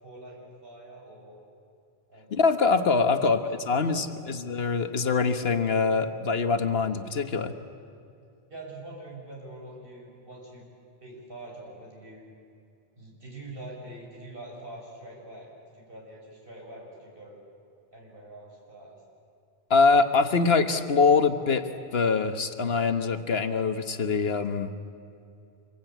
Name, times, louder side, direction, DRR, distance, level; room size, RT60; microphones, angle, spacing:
voice 1, 0.0-1.4 2.1-2.4 3.0-3.3 3.5-4.3 8.5-10.6 11.0-12.2 13.0-17.4 17.9-19.0, right 1 dB, 60° right, -2 dB, 6.9 m, -45 dB
voice 2, 2.3-7.5 19.7-24.7, left 4 dB, 75° left, 8 dB, 1.4 m, -24 dB
26.0 x 22.5 x 9.2 m, 2.5 s
omnidirectional pair, 1.0 m